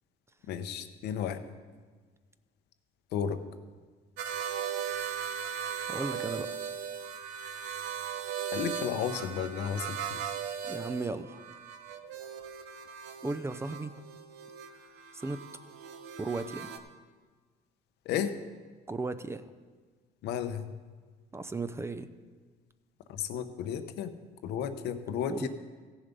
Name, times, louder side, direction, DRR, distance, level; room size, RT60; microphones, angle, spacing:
voice 1, 0.5-1.4 3.1-3.4 8.5-10.2 18.0-18.3 20.2-20.7 23.1-24.1 24.4-25.5, left 8 dB, 80° left, 9 dB, 0.8 m, -33 dB
sound 1, 4.2-16.8, right 8 dB, 85° right, 0.9 m, -38 dB
voice 2, 5.9-6.5 10.6-11.4 13.2-13.9 15.1-15.4 16.2-16.7 18.9-19.5 21.3-22.1 25.3-25.5, right 3 dB, 15° right, 11 dB, 0.5 m, -35 dB
15.5 x 7.1 x 5.2 m, 1.5 s
cardioid pair, 110°, 17 cm